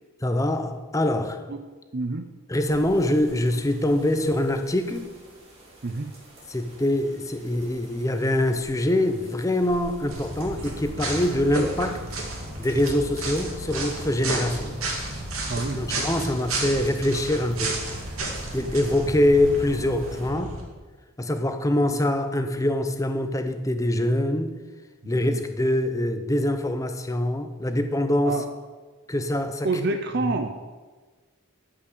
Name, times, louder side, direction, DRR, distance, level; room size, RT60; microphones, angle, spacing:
voice 1, 0.2-1.4 2.5-5.1 6.5-12.0 12.6-14.8 15.6-17.8 18.5-20.6 21.2-24.6 25.1-28.4 29.1-29.7 30.2-30.3, left 1 dB, 15° left, 0.7 m, -24 dB
voice 2, 1.9-2.2 5.8-6.1 15.5-15.8 25.0-25.4 28.2-28.5 29.6-30.7, right 3 dB, 50° right, 0.6 m, -28 dB
sound 1, 2.6-20.3, right 1 dB, 30° right, 2.8 m, -48 dB
sound 2, 10.1-20.6, right 2 dB, 80° right, 2.5 m, -32 dB
13.0 x 5.8 x 6.7 m
head